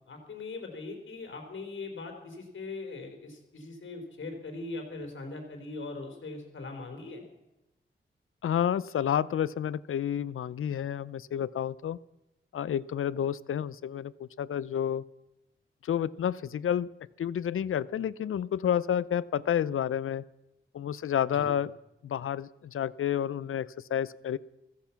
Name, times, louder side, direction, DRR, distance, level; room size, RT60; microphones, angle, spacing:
voice 1, 0.1-7.2 21.3-21.5, left 3 dB, 65° left, 4 dB, 3.9 m, -40 dB
voice 2, 8.4-12.0 12.5-15.0 15.8-16.9 17.2-20.2 20.7-21.7 22.0-24.4, left 9 dB, 85° left, 19 dB, 0.6 m, -30 dB
15.5 x 15.5 x 5.8 m, 0.95 s
wide cardioid pair, 125°, 21 cm